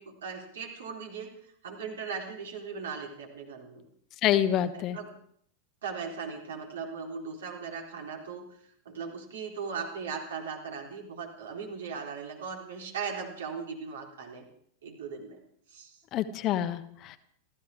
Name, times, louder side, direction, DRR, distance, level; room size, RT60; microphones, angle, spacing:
voice 1, 0.0-3.8 4.6-5.1 5.8-8.6 8.9-14.4 14.8-15.4 15.7-16.0, right 5 dB, 60° right, 1 dB, 3.9 m, -38 dB
voice 2, 4.2-5.0 16.1-17.2, left 11 dB, 35° left, 10 dB, 1.2 m, -27 dB
28.0 x 14.0 x 3.6 m, 0.64 s
figure-of-eight pair, 90°, 0 cm